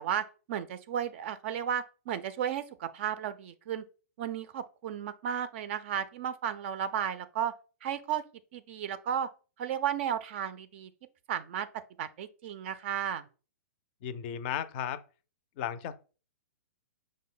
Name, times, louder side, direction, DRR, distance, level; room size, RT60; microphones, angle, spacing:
voice 1, 0.0-3.8 4.2-7.5 7.8-8.2 8.5-9.3 9.6-10.9 11.3-11.7 12.0-13.2, right 9 dB, 45° right, 0.3 m, -34 dB
voice 2, 14.0-15.0 15.6-16.0, left 9 dB, 40° left, 0.4 m, -35 dB
5.2 x 2.1 x 3.7 m
hypercardioid pair, 145°, 9 cm